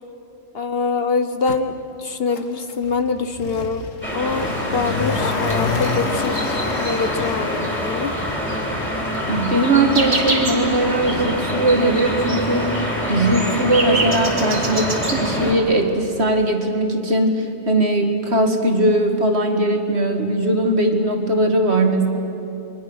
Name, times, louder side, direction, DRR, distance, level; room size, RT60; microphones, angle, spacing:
voice 1, 0.5-3.9 4.1-8.1, left 4 dB, 55° left, 9 dB, 1.0 m, -24 dB
Motor vehicle (road), 1.5-1.6 2.3-15.2 15.5-15.6, left 5 dB, 80° left, 1.6 m, -31 dB
sound 1, 4.0-15.5, equal, 10° left, 3.8 m, -25 dB
voice 2, 9.3-12.8 13.1-22.1, right 1 dB, 55° right, 4 dB, 2.3 m, -19 dB
sound 2, 9.9-10.7 11.0-11.1 11.4-11.7 12.0-12.1 12.5-15.2 16.0-16.1 16.2-16.5, right 2 dB, 80° right, 3.2 m, -26 dB
28.5 x 23.0 x 6.4 m, 2.8 s
omnidirectional pair, 1.3 m